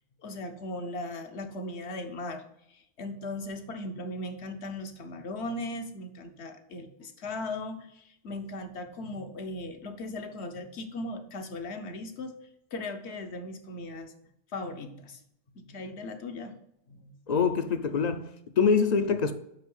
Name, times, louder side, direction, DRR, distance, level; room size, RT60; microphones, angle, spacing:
voice 1, 0.2-2.4 2.7-12.3 12.7-14.1 14.5-15.2 15.5-16.5 16.9-17.1, left 2 dB, 70° left, 1.2 m, -38 dB
voice 2, 17.3-19.3, left 5 dB, 50° left, 0.5 m, -25 dB
5.7 x 5.5 x 5.3 m
omnidirectional pair, 1.2 m